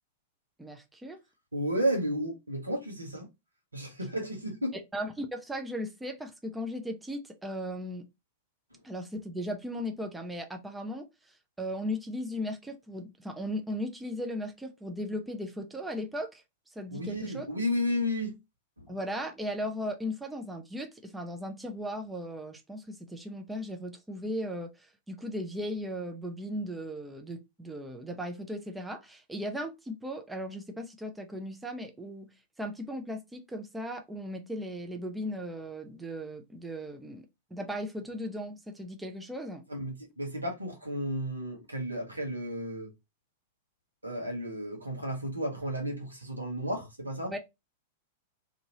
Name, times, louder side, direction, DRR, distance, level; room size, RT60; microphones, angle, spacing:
voice 1, 0.6-1.2 4.7-8.1 8.8-11.0 11.6-16.4 16.8-17.5 18.9-24.7 25.1-32.3 32.6-37.3 37.5-39.6 47.3-47.4, equal, 5° right, 0.6 m, -37 dB
voice 2, 1.5-3.3 3.7-4.8 16.9-18.4 18.8-18.9 39.7-42.9 44.0-47.4, equal, 85° right, 1.1 m, -33 dB
2.7 x 2.6 x 2.9 m
figure-of-eight pair, 100°, 0 cm